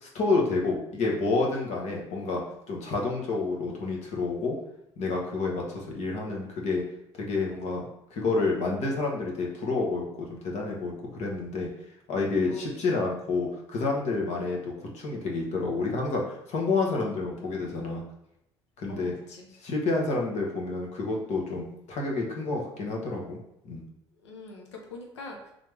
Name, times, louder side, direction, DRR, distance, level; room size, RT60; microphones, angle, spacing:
voice 1, 0.0-2.4 2.7-4.6 5.0-6.8 7.2-11.7 12.1-18.0 18.8-19.1 19.6-23.4 23.6-23.8, left 3 dB, 55° left, -1 dB, 1.1 m, -29 dB
voice 2, 18.9-19.5 24.2-25.5, left 3 dB, 85° left, 1 dB, 0.7 m, -44 dB
3.8 x 3.3 x 3.3 m, 0.81 s
hypercardioid pair, 55°, 14 cm